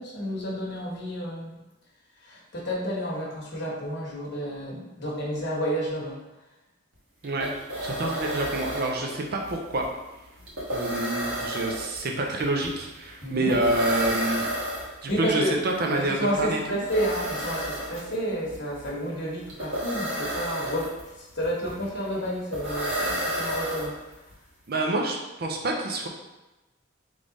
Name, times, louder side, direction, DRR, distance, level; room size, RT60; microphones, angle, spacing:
voice 1, 0.0-1.6 2.2-6.2 13.2-13.5 15.1-15.6 15.9-24.0, equal, 60° left, -4 dB, 1.2 m, -30 dB
sound 1, 6.9-7.0 7.2-24.3, equal, 80° right, 1.4 m, -32 dB
voice 2, 7.8-9.8 10.7-14.5 15.0-16.8 24.7-26.1, right 2 dB, 50° right, 1 dB, 0.6 m, -27 dB
3.5 x 3.3 x 3.9 m, 1.0 s
head